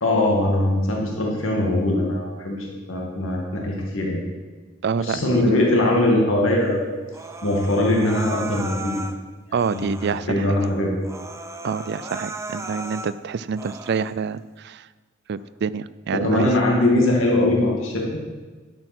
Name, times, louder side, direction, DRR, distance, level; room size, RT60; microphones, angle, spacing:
voice 1, 0.0-4.2 5.0-6.9 7.4-9.0 9.7-9.8 10.1-11.0 16.1-18.0, left 1 dB, 75° left, -1 dB, 2.2 m, -21 dB
voice 2, 4.8-5.6 9.5-10.6 11.6-14.9 15.3-16.5, right 5 dB, 55° right, 16 dB, 0.4 m, -27 dB
Human voice, 7.1-9.2 9.6-10.2 10.6-10.7 11.0-13.1 13.5-14.1, right 2 dB, 15° right, 0.7 m, -35 dB
11.0 x 7.8 x 6.1 m, 1.3 s
head